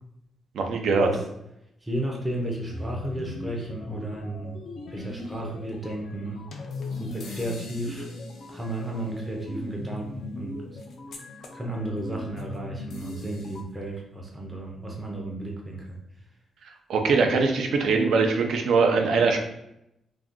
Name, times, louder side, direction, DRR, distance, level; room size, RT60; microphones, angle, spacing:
voice 1, 0.5-1.1 16.9-19.4, right 4 dB, 75° right, 4 dB, 0.5 m, -22 dB
voice 2, 1.8-4.6 4.9-6.4 6.9-8.1 8.5-10.8 11.5-16.0, right 1 dB, 10° right, -1 dB, 0.5 m, -33 dB
sound 1, 2.7-13.6, left 2 dB, 60° left, 0.4 m, -39 dB
2.5 x 2.2 x 3.6 m, 0.82 s
cardioid pair, 120°, 0 cm